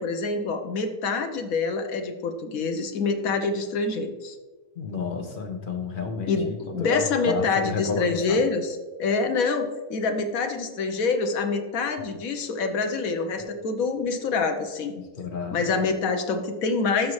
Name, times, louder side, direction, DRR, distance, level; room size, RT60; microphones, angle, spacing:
voice 1, 0.0-4.3 6.3-14.9 15.5-17.1, left 4 dB, 85° left, 6 dB, 1.3 m, -26 dB
voice 2, 4.8-8.4 15.0-15.7, left 4 dB, 40° left, 4 dB, 1.0 m, -31 dB
12.5 x 5.5 x 3.1 m, 1.3 s
omnidirectional pair, 1.4 m